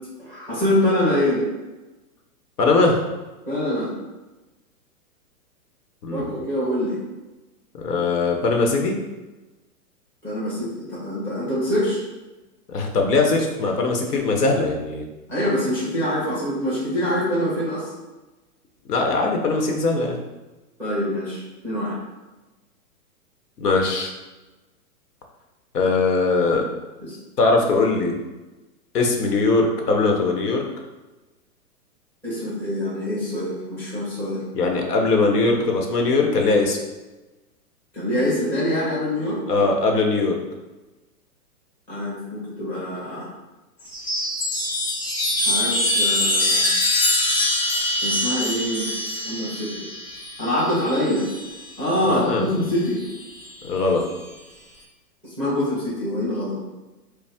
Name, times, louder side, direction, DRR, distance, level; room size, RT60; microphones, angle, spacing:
voice 1, 0.2-1.4 3.5-3.9 6.1-7.0 10.2-12.0 15.3-17.9 20.8-22.0 27.0-27.2 32.2-34.4 37.9-39.4 41.9-43.3 45.4-46.6 48.0-48.8 49.2-49.7 50.4-51.2 51.8-53.0 55.2-56.5, left 1 dB, 5° left, -9 dB, 0.6 m, -24 dB
voice 2, 2.6-3.0 6.0-6.3 7.7-9.0 12.7-15.1 18.9-20.2 23.6-24.1 25.7-26.7 27.4-28.2 28.9-30.6 34.5-36.8 39.5-40.4 52.1-52.5 53.6-54.0, left 3 dB, 80° left, 2 dB, 1.0 m, -20 dB
Chime, 43.8-51.6 52.9-53.5, left 1 dB, 40° left, 1.2 m, -24 dB
5.2 x 2.0 x 3.4 m, 1.1 s
hypercardioid pair, 150°, 47 cm